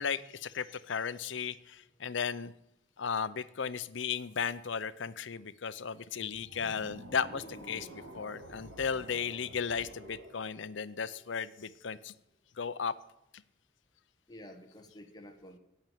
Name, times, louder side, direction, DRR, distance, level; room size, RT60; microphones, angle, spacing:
voice 1, 0.0-2.5 3.0-7.9 8.1-12.1 12.6-12.9, left 6 dB, 70° left, 15 dB, 0.6 m, -35 dB
sound 1, 6.3-11.6, right 1 dB, 90° right, 2.6 m, -50 dB
voice 2, 7.3-8.0 14.3-15.6, left 1 dB, 20° left, 5 dB, 1.2 m, -51 dB
8.9 x 8.8 x 9.1 m, 0.81 s
head